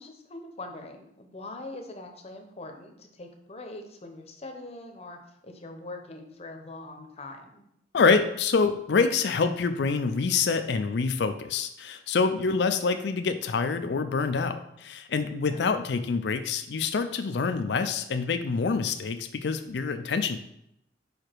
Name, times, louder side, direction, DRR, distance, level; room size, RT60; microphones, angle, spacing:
voice 1, 0.0-7.6 15.5-15.8, left 2 dB, 35° left, 4 dB, 0.8 m, -43 dB
voice 2, 7.9-20.4, left 4 dB, 65° left, 8 dB, 0.4 m, -26 dB
4.9 x 4.8 x 4.5 m, 0.77 s
head